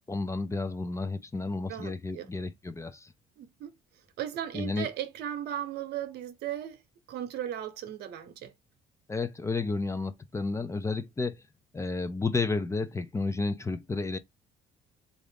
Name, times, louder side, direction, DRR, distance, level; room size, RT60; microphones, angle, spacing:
voice 1, 0.1-3.1 4.5-4.9 9.1-11.4 11.7-14.2, left 3 dB, 15° left, 0.5 m, -31 dB
voice 2, 1.7-2.3 3.4-3.7 4.2-6.8 7.1-8.5, right 11 dB, 75° right, 0.9 m, -36 dB
3.7 x 2.5 x 3.4 m
cardioid pair, 110°, 17 cm